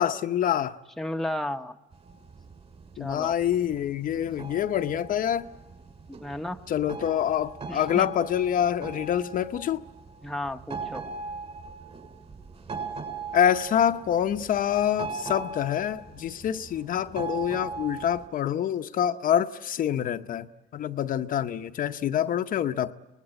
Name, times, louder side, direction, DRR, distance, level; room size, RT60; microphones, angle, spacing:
voice 1, 0.0-0.8 3.0-5.5 6.7-9.8 13.3-20.5 20.7-22.9, left 9 dB, 55° left, 0.8 m, -26 dB
voice 2, 1.0-1.8 3.0-3.4 6.1-6.6 7.7-8.1 10.2-11.0, left 1 dB, ahead, 0.9 m, -33 dB
sound 1, 1.9-18.3, right 4 dB, 40° right, 5.8 m, -39 dB
24.5 x 20.0 x 8.8 m
cardioid pair, 110°, 17 cm